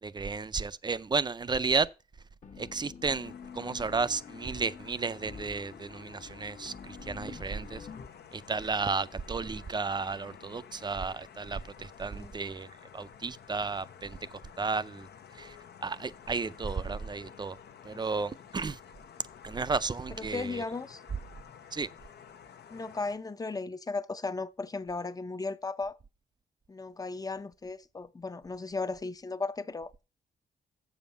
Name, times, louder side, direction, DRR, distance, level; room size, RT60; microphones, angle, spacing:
voice 1, 0.0-1.9 2.6-7.9 8.3-12.7 12.9-14.2 14.6-15.1 15.3-15.6 15.8-17.6 17.8-18.8 19.4-20.6 21.7-21.9, right 4 dB, 25° right, 0.4 m, -33 dB
sound 1, 2.4-8.1, left 6 dB, 45° left, 1.1 m, -47 dB
sound 2, 3.2-23.2, left 8 dB, 75° left, 0.9 m, -52 dB
voice 2, 20.2-21.0 22.7-25.9 26.7-30.0, left 3 dB, 20° left, 0.6 m, -36 dB
7.4 x 7.3 x 5.6 m
cardioid pair, 105°, 17 cm